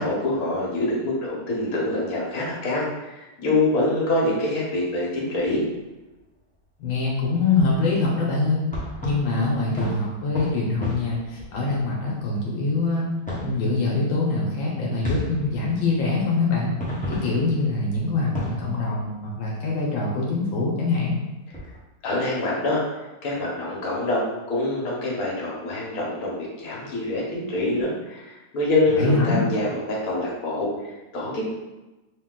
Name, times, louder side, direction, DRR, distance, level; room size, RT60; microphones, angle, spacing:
voice 1, 0.0-5.7 22.0-22.8 23.2-31.5, left 2 dB, 50° left, -4 dB, 1.4 m, -25 dB
sound 1, 5.3-6.4 7.5-8.0 8.6-12.4 13.2-14.3 14.6-14.7 15.0-19.5 20.0-20.1 21.1-21.2 21.5-21.8, left 1 dB, 10° left, 0.5 m, -34 dB
voice 2, 6.8-8.7 9.0-13.1 13.4-16.7 17.1-21.2 29.0-29.4, left 3 dB, 80° left, -3 dB, 1.5 m, -24 dB
3.8 x 2.8 x 3.7 m, 1.1 s
omnidirectional pair, 2.1 m